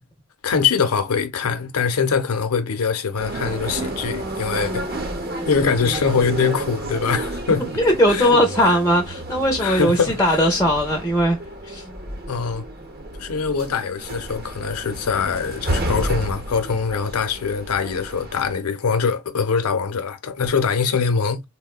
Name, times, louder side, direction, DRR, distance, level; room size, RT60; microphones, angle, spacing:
voice 1, 0.4-4.9 5.4-7.8 8.1-8.3 8.6-8.8 9.6-10.4 12.3-12.6 13.2-21.4, left 5 dB, 90° left, 0.6 m, -23 dB
sound 1, 3.1-18.5, right 1 dB, 45° right, 0.8 m, -31 dB
voice 2, 7.8-11.8, equal, 10° left, 0.5 m, -19 dB
3.6 x 2.1 x 2.3 m
head